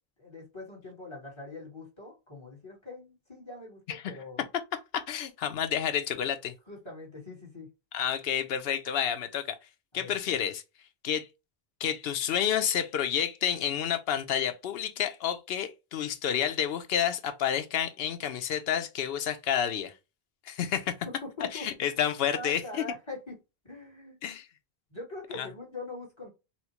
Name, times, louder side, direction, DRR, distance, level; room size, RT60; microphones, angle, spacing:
voice 1, 0.2-4.4 6.7-7.7 9.9-10.1 21.0-21.7 22.3-23.4 23.6-24.2 24.9-26.3, left 2 dB, 30° left, 1.3 m, -42 dB
voice 2, 4.9-6.5 7.9-9.6 9.9-10.6 11.0-11.3 11.8-19.9 20.5-20.9 21.5-22.8 24.2-24.5 25.4-25.5, left 9 dB, 70° left, 0.8 m, -29 dB
4.2 x 2.1 x 2.8 m
omnidirectional pair, 1.0 m